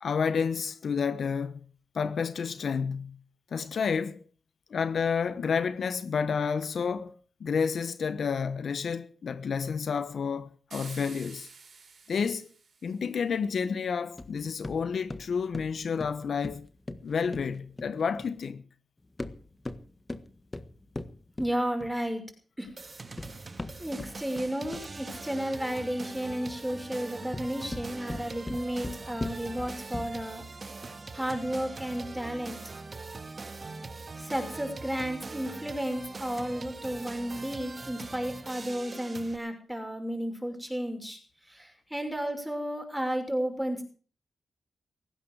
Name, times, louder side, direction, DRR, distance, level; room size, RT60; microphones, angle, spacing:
voice 1, 0.0-1.6 1.9-3.2 3.5-4.2 4.7-7.1 7.4-11.5 12.1-12.5 12.8-16.7 17.0-18.6, left 6 dB, 65° left, 1.1 m, -30 dB
sound 1, 10.7-13.1, right 5 dB, 60° right, 6.1 m, -49 dB
sound 2, 14.2-18.4 19.1-22.1 22.9-25.1 27.1-30.4, left 2 dB, 20° left, 1.5 m, -40 dB
voice 2, 21.4-22.2 22.6-22.7 23.8-30.4 31.1-32.6 34.2-41.2 41.5-43.8, equal, 5° right, 6.2 m, -33 dB
sound 3, 22.8-39.4, right 3 dB, 40° right, 2.0 m, -42 dB
18.0 x 15.5 x 4.9 m
cardioid pair, 80°, 0 cm